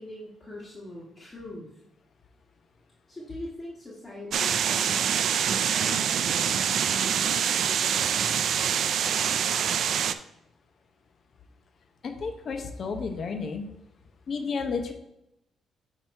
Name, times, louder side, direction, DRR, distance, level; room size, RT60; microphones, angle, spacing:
voice 1, 0.0-1.7 3.1-9.6, left 1 dB, 20° left, -6 dB, 1.4 m, -44 dB
sound 1, 4.3-10.1, right 8 dB, 65° right, 0.3 m, -25 dB
voice 2, 12.0-13.7 14.3-14.9, left 5 dB, 50° left, 6 dB, 0.9 m, -32 dB
8.7 x 2.9 x 4.6 m, 0.84 s
cardioid pair, 90°, 0 cm